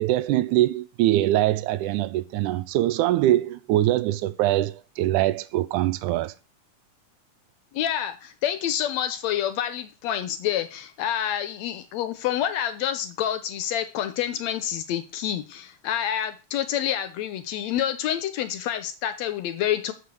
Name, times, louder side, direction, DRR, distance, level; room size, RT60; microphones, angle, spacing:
voice 1, 0.0-6.3, right 14 dB, 90° right, 2.1 m, -23 dB
voice 2, 7.7-19.9, left 10 dB, 75° left, 1.8 m, -28 dB
6.8 x 4.8 x 7.0 m
omnidirectional pair, 3.4 m